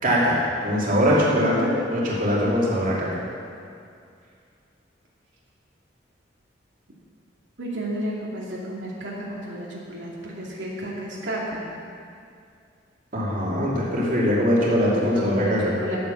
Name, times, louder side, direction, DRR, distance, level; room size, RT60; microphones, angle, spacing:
voice 1, 0.0-3.1 13.1-15.7, equal, 50° right, -6 dB, 2.9 m, -22 dB
voice 2, 7.6-11.6 14.9-16.0, right 1 dB, 80° right, -5 dB, 2.4 m, -32 dB
11.0 x 9.0 x 7.2 m, 2.4 s
head